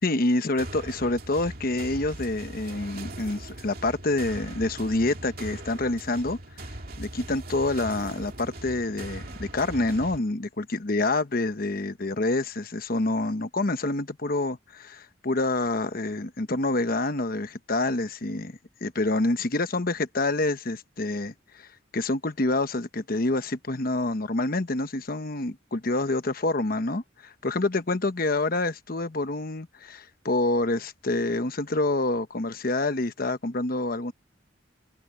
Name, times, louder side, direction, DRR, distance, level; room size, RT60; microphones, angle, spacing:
voice 1, 0.0-6.4 7.0-21.7 21.9-34.1, left 2 dB, 50° left, 1.1 m, -27 dB
sound 1, 0.6-10.2, right 1 dB, 50° right, 2.4 m, -40 dB
head